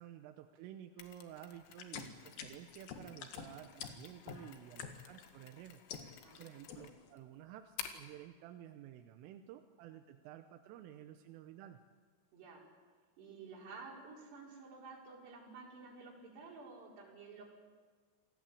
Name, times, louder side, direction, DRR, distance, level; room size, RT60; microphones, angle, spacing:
voice 1, 0.0-5.8 6.4-11.8, right 11 dB, 90° right, 6 dB, 3.6 m, -52 dB
Mechanisms, 1.0-8.2, left 9 dB, 85° left, 4.1 m, -53 dB
sound 1, 1.7-5.3 5.7-6.4 6.7-7.1, left 7 dB, 60° left, 2.8 m, -47 dB
voice 2, 12.3-12.6 13.2-17.5, right 4 dB, 60° right, -3 dB, 7.0 m, -52 dB
27.5 x 18.0 x 8.5 m, 1.5 s
omnidirectional pair, 5.7 m